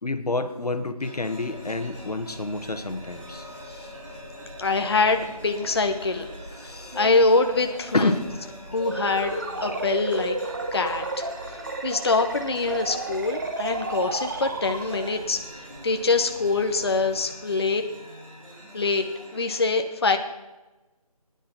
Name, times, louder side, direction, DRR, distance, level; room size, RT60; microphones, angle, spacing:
voice 1, 0.0-3.5 6.6-7.0 7.9-8.2, left 2 dB, 85° left, 9 dB, 1.3 m, -28 dB
sound 1, 1.0-19.6, equal, 55° right, 3.8 m, -44 dB
sound 2, 1.3-17.2, equal, 90° right, 4.4 m, -46 dB
voice 2, 4.6-6.3 6.6-8.1 8.7-9.3 9.6-10.4 10.7-17.8 18.7-19.1 19.3-20.2, left 3 dB, 40° left, 6 dB, 0.7 m, -24 dB
sound 3, 8.8-15.2, right 2 dB, 30° right, 0.8 m, -32 dB
16.5 x 10.0 x 4.4 m, 1.1 s
figure-of-eight pair, 170°, 19 cm